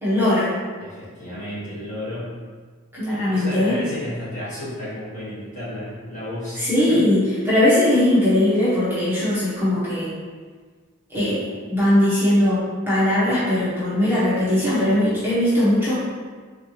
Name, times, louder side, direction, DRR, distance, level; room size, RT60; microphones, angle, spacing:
voice 1, 0.0-0.5 2.9-3.7 6.6-7.2 7.4-10.1 11.1-15.9, left 1 dB, 10° right, -12 dB, 1.1 m, -19 dB
voice 2, 0.8-2.3 3.1-7.0, left 1 dB, 35° left, -11 dB, 1.5 m, -32 dB
3.8 x 3.3 x 2.9 m, 1.5 s
head